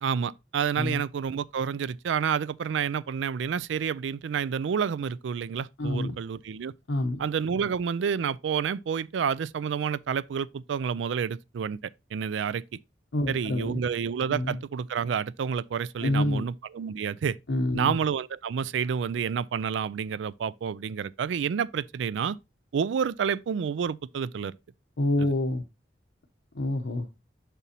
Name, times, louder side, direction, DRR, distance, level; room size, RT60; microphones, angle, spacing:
voice 1, 0.0-6.7 7.2-11.8 12.1-12.6 13.3-17.4 17.7-22.4 22.7-24.5 25.2-25.3, right 7 dB, 85° right, 0.3 m, -29 dB
voice 2, 5.8-6.1 6.9-7.2 13.1-13.8 14.3-14.6 16.0-16.5 17.5-18.0 25.0-25.6 26.5-27.1, left 1 dB, 90° left, 0.8 m, -27 dB
6.8 x 6.0 x 2.8 m
head